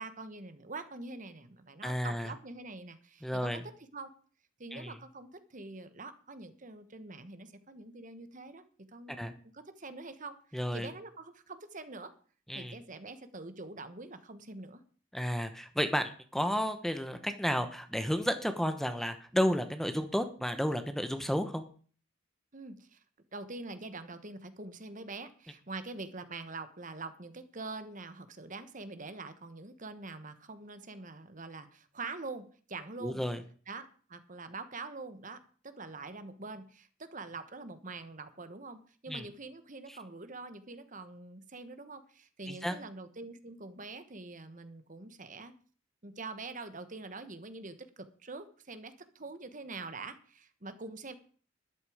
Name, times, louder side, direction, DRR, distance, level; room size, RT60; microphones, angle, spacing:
voice 1, 0.0-3.5 3.9-4.1 4.6-12.1 12.5-14.8 22.5-23.0 23.3-33.2 33.7-45.5 46.0-51.1, right 3 dB, 40° right, 11 dB, 1.3 m, -45 dB
voice 2, 1.8-2.3 3.2-3.6 4.7-5.0 9.1-9.3 10.5-10.9 12.5-12.8 15.1-21.6 33.0-33.4 39.1-39.3 39.9-40.0 42.5-42.8, equal, ahead, 8 dB, 1.1 m, -32 dB
13.0 x 12.0 x 5.0 m, 0.43 s
head